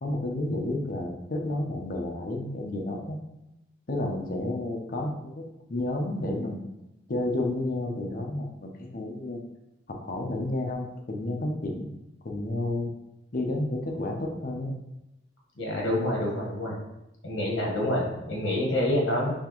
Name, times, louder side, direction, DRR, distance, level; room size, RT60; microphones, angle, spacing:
voice 1, 0.0-3.2 3.9-6.6 7.1-9.4 9.9-11.9 12.2-12.9 13.3-14.7, left 1 dB, 45° left, 2 dB, 0.7 m, -31 dB
voice 2, 15.6-16.7 17.2-19.3, left 1 dB, 70° left, -2 dB, 1.1 m, -27 dB
4.3 x 3.3 x 3.0 m, 0.90 s
head